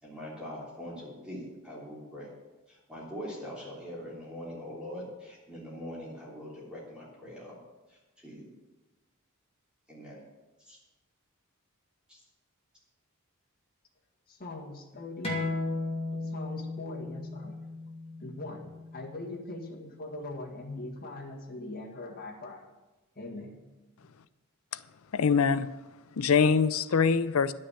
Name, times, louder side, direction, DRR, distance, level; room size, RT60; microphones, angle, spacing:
voice 1, 0.0-2.3 2.7-7.6 7.9-8.5 9.9-10.2 10.6-10.8 12.1-12.2, equal, 5° right, -6 dB, 3.2 m, -42 dB
voice 2, 14.3-15.3 16.1-17.6 18.2-22.6 23.2-23.6, left 2 dB, 45° left, -1 dB, 2.0 m, -41 dB
sound 1, 15.2-20.4, left 2 dB, 25° left, 2.4 m, -36 dB
voice 3, 25.1-25.7 26.2-27.5, left 5 dB, 70° left, 15 dB, 0.5 m, -23 dB
11.0 x 6.6 x 8.3 m, 1.1 s
head